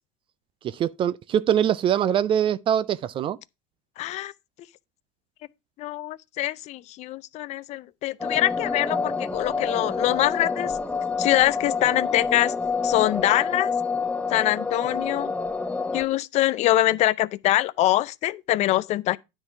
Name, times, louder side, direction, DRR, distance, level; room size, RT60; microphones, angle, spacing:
voice 1, 0.6-3.4, right 9 dB, 30° right, 0.4 m, -23 dB
voice 2, 4.0-4.3 5.8-10.7 11.2-12.5 12.8-13.7 14.3-15.3 15.9-19.2, left 15 dB, 40° left, 0.5 m, -24 dB
sound 1, 8.2-16.1, left 4 dB, 5° left, 0.7 m, -28 dB
9.6 x 3.9 x 5.7 m
supercardioid pair, 110°, 17 cm